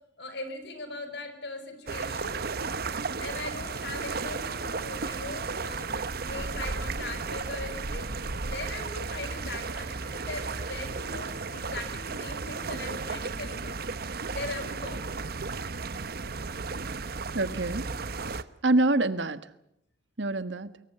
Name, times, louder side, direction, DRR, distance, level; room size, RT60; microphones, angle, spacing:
voice 1, 0.2-2.4 2.9-8.1 8.5-13.9 14.3-15.1, left 2 dB, 65° left, 8 dB, 5.2 m, -40 dB
sound 1, 1.9-18.4, right 4 dB, 55° right, 1.0 m, -34 dB
sound 2, 2.6-11.4, right 2 dB, 25° right, 2.5 m, -53 dB
voice 2, 17.3-17.9 18.2-19.5 20.2-20.7, right 2 dB, 80° right, 13 dB, 1.5 m, -26 dB
24.5 x 23.0 x 6.8 m, 0.77 s
head